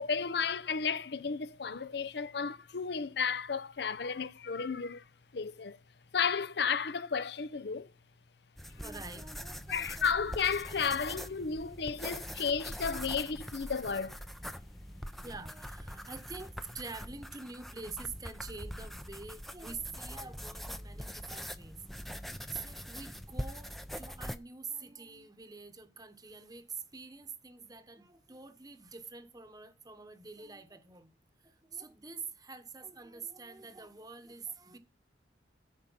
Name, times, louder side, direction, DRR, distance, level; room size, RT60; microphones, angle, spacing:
voice 1, 0.0-5.0 5.3-5.8 6.1-7.9 9.7-14.2, left 6 dB, 60° left, 0.6 m, -33 dB
sound 1, 8.6-24.4, equal, ahead, 0.5 m, -43 dB
voice 2, 8.8-10.4 11.0-11.1 15.2-21.8 22.5-31.1 31.4-34.8, right 4 dB, 20° right, 1.1 m, -46 dB
13.5 x 5.1 x 5.6 m
head